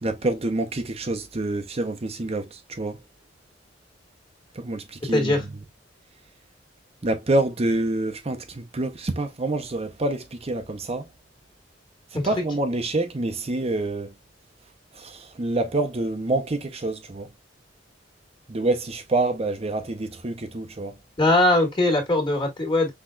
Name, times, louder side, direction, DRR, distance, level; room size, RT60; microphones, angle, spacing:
voice 1, 0.0-3.0 4.5-5.4 7.0-11.1 12.1-14.1 14.9-17.3 18.5-20.9, right 2 dB, 35° right, 0.7 m, -27 dB
voice 2, 5.1-5.4 12.1-12.2 21.2-22.9, left 2 dB, 25° left, 1.7 m, -20 dB
5.7 x 3.6 x 2.3 m
head